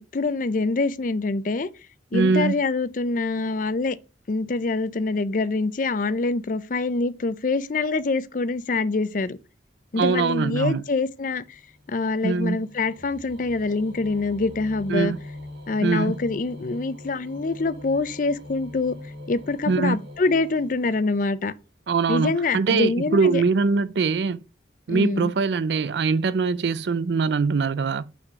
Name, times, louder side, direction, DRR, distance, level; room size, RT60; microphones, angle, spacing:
voice 1, 0.1-1.7 2.1-4.0 4.3-9.4 9.9-11.6 11.9-15.1 15.7-19.0 19.3-21.5 22.1-23.4 24.9-25.3, left 3 dB, 45° left, 0.5 m, -25 dB
voice 2, 2.1-2.6 10.0-10.8 12.2-12.6 14.9-15.2 15.8-16.1 19.7-20.0 21.9-24.4 24.9-28.1, right 4 dB, 70° right, 0.4 m, -22 dB
sound 1, 10.9-21.6, left 1 dB, 85° right, 2.5 m, -43 dB
5.8 x 4.2 x 5.6 m
head